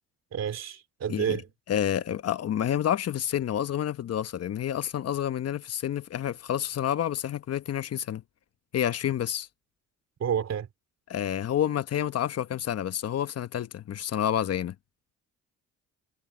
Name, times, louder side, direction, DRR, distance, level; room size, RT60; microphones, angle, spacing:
voice 1, 0.3-1.5 10.2-10.7, right 8 dB, 60° right, 3.4 m, -29 dB
voice 2, 1.1-1.4 1.7-8.2 8.7-9.5 11.1-14.7, left 10 dB, 55° left, 1.1 m, -29 dB
cardioid pair, 90°, 30 cm